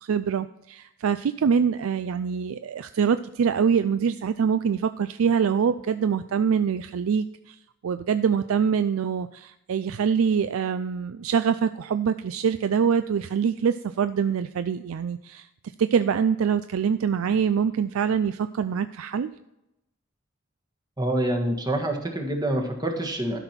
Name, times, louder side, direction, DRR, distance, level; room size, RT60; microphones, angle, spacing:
voice 1, 0.0-7.6 7.8-15.5 15.8-19.3, right 7 dB, 85° right, 12 dB, 0.4 m, -24 dB
voice 2, 21.0-23.4, right 1 dB, 20° right, 2 dB, 1.5 m, -26 dB
12.5 x 6.0 x 4.4 m, 0.87 s
head